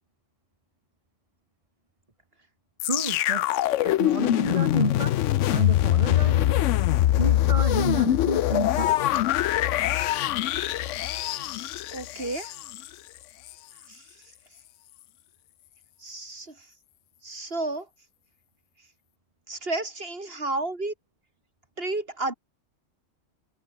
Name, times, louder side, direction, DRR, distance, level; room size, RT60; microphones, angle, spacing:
sound 1, 2.8-12.9 13.5-13.6, left 13 dB, 75° left, 0.9 m, -23 dB
voice 1, 2.8-3.5 3.8-5.2 5.5-6.6 7.2-9.0, right 2 dB, 25° right, 2.0 m, -30 dB
voice 2, 11.7-12.5 13.9-14.0 16.0-16.5 17.2-17.9 19.5-20.9 21.8-22.3, right 2 dB, 50° right, 3.6 m, -32 dB
omnidirectional pair, 1.3 m